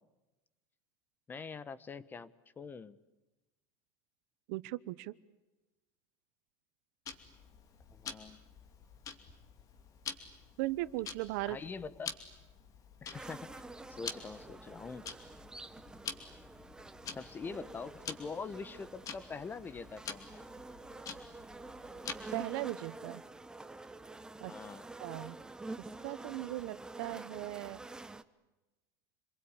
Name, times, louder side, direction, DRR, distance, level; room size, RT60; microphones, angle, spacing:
voice 1, 1.3-3.0 7.9-8.4 11.4-12.1 13.0-13.6 13.9-15.1 17.1-20.4 24.5-24.9, left 5 dB, 20° left, 17 dB, 1.1 m, -44 dB
voice 2, 4.5-5.1 10.6-11.6 22.3-23.2 24.4-24.5 25.0-25.4 26.0-27.8, right 18 dB, 70° right, 16 dB, 1.0 m, -38 dB
Tick-tock, 7.1-22.5, left 6 dB, 35° left, 2.6 m, -48 dB
sound 1, 13.1-28.2, right 2 dB, 5° right, 1.0 m, -48 dB
27.5 x 21.5 x 9.8 m, 1.1 s
supercardioid pair, 135°, 10 cm